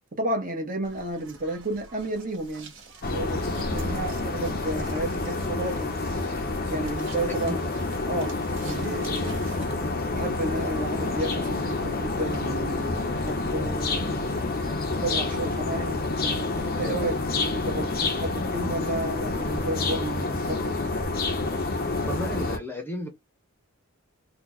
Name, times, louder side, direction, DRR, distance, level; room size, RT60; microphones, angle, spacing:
voice 1, 0.2-2.7 3.0-5.9 6.7-7.7 8.0-8.4 8.7-9.5 10.1-14.2 15.0-20.8, right 1 dB, 35° right, 1.1 m, -32 dB
sound 1, 0.8-9.7, right 2 dB, 55° right, 1.4 m, -46 dB
sound 2, 3.0-22.6, left 3 dB, 40° left, 0.6 m, -28 dB
voice 2, 22.1-23.1, equal, 10° left, 0.8 m, -32 dB
3.7 x 2.4 x 3.0 m
head